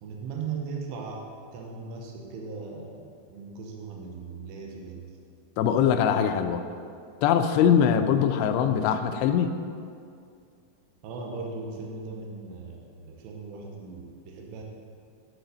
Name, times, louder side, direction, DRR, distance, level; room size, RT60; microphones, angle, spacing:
voice 1, 0.0-5.1 11.0-14.6, right 4 dB, 80° right, 0 dB, 2.9 m, -38 dB
voice 2, 5.6-6.6 7.2-9.5, left 8 dB, 85° left, 7 dB, 2.5 m, -22 dB
13.5 x 4.7 x 4.0 m, 2.3 s
omnidirectional pair, 5.2 m